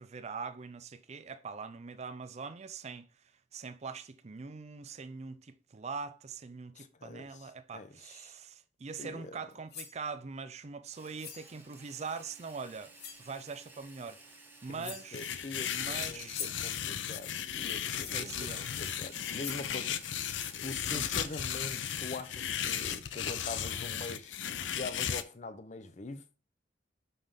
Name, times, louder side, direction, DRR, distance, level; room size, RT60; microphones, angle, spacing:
voice 1, 0.0-14.2 14.6-15.3 15.7-16.4 18.1-18.6 20.9-21.1, right 5 dB, 35° right, 0.5 m, -43 dB
voice 2, 6.7-8.4 9.0-9.4 14.7-20.0 20.6-24.4 24.6-26.2, left 3 dB, 40° left, 0.7 m, -44 dB
Blade being pulled, 9.5-10.0 11.2-11.5 12.5-12.6 13.0-13.3 14.3-14.4 14.8-15.2 16.1-16.7 18.0-18.3 19.0-19.1 19.4-19.8, left 7 dB, 60° left, 1.1 m, -43 dB
Drill, 10.9-17.0 18.0-22.6, right 2 dB, 10° right, 1.0 m, -55 dB
sound 1, 15.1-25.2, left 9 dB, 90° left, 0.5 m, -35 dB
5.6 x 5.5 x 3.5 m
head